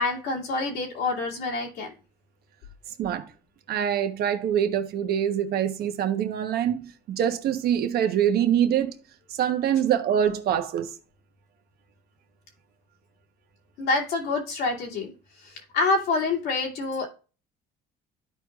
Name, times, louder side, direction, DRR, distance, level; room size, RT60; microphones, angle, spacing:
voice 1, 0.0-1.9 13.8-15.1 15.4-17.1, left 3 dB, 90° left, 2.5 m, -27 dB
voice 2, 3.7-9.0 9.3-10.9, right 9 dB, 65° right, 1.2 m, -24 dB
13.0 x 4.8 x 2.5 m
cardioid pair, 110°, 17 cm